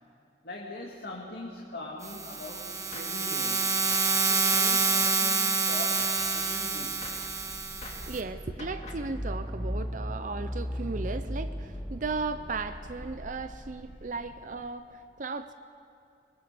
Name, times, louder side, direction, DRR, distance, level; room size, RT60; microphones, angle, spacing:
voice 1, 0.4-3.6 4.0-7.0, left 2 dB, 60° left, -2 dB, 2.3 m, -42 dB
sound 1, 2.0-8.2, right 4 dB, 20° right, 1.3 m, -27 dB
Gunshot gunfire, 2.9-3.2 3.9-4.2 4.5-5.3 6.0-6.3 7.0-7.3 7.8-8.1 8.6-9.1, left 3 dB, 40° left, 2.5 m, -46 dB
sound 2, 6.9-14.7, equal, ahead, 1.5 m, -37 dB
voice 2, 8.0-15.5, right 4 dB, 45° right, 10 dB, 0.6 m, -36 dB
23.5 x 20.0 x 6.8 m, 2.7 s
head